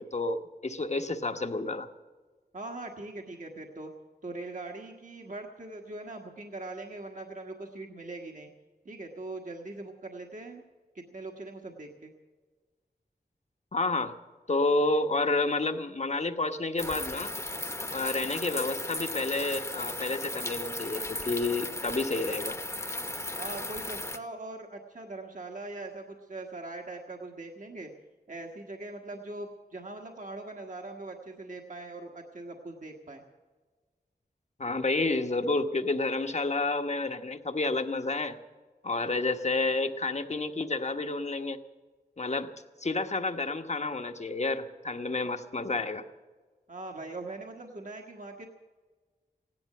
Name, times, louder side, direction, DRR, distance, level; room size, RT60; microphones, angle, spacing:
voice 1, 0.0-1.9 13.7-14.1 14.5-17.3 17.9-22.6 34.6-38.4 38.8-41.6 42.2-42.5 42.8-46.0, left 2 dB, 45° left, 7 dB, 1.1 m, -30 dB
voice 2, 2.5-3.9 4.2-8.5 8.8-10.6 10.9-12.1 23.4-27.9 28.3-33.2 46.7-48.5, right 2 dB, 50° right, 1 dB, 1.4 m, -41 dB
sound 1, 16.8-24.2, left 1 dB, 15° left, 1.0 m, -36 dB
16.0 x 10.5 x 7.7 m, 1.4 s
wide cardioid pair, 60°, 16 cm